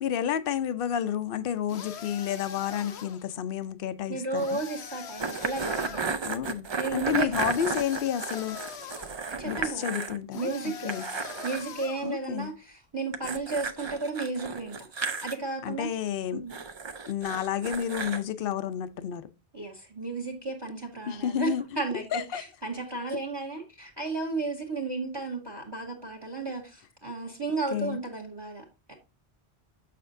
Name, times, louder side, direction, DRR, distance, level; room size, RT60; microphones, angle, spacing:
voice 1, 0.0-4.6 6.2-8.6 9.4-10.5 10.8-11.1 12.0-12.5 15.6-16.4 17.1-19.3 21.1-21.6 22.1-22.4 27.7-28.0, left 9 dB, 60° left, 0.8 m, -30 dB
sound 1, 1.7-3.3 4.3-6.1 7.4-9.2 10.3-12.1, left 7 dB, 85° left, 1.1 m, -42 dB
voice 2, 4.1-6.1 6.8-7.3 9.3-9.8 10.3-10.9 11.4-14.9 15.2-15.9 16.3-16.5 19.5-28.9, right 3 dB, 25° right, 1.2 m, -33 dB
sound 2, 5.2-10.2 10.5-10.6 10.9-11.7 13.1-15.3 16.5-18.2, right 4 dB, 45° right, 0.4 m, -33 dB
6.7 x 6.6 x 2.5 m
omnidirectional pair, 1.1 m